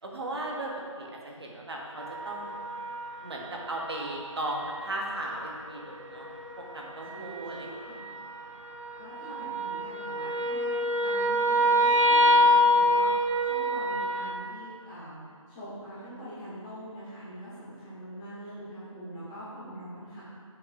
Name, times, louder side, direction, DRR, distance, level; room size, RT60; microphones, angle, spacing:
voice 1, 0.0-2.6 3.2-6.3 6.6-7.7, right 1 dB, 50° right, -1 dB, 1.5 m, -36 dB
sound 1, 2.0-14.3, equal, 65° right, 0.9 m, -27 dB
voice 2, 7.1-8.0 9.0-15.2 15.5-20.2, right 1 dB, 5° left, -12 dB, 0.7 m, -43 dB
7.0 x 6.2 x 4.7 m, 2.1 s
figure-of-eight pair, 170°, 17 cm